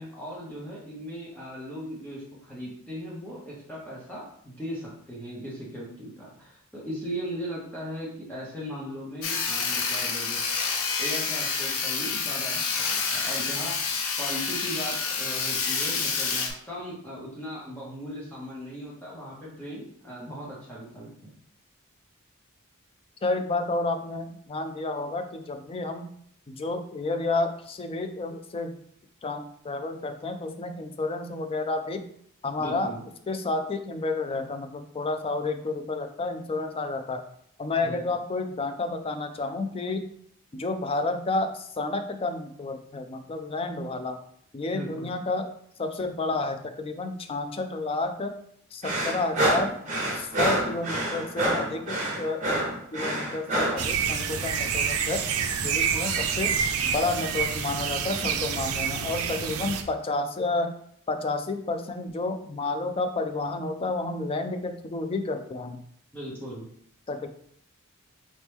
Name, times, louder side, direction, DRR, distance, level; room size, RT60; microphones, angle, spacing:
voice 1, 0.0-10.4 11.0-21.3 32.6-33.0 37.8-38.0 44.7-45.1 66.1-66.7, equal, 5° left, -6 dB, 1.0 m, -38 dB
Sawing, 9.2-16.5, left 5 dB, 70° left, 0.7 m, -28 dB
voice 2, 23.2-26.0 26.5-28.7 29.2-32.0 32.4-32.9 33.3-37.2 37.6-40.1 40.5-44.2 44.5-45.5 45.8-48.3 48.7-49.8 50.1-52.4 52.9-55.2 55.6-56.5 56.8-60.7 61.1-65.8 67.1-67.3, left 3 dB, 25° left, 7 dB, 0.4 m, -30 dB
sound 1, 48.8-53.9, right 1 dB, 35° right, 1.2 m, -27 dB
sound 2, 53.8-59.8, right 7 dB, 75° right, 0.5 m, -28 dB
4.2 x 3.0 x 3.5 m, 0.66 s
head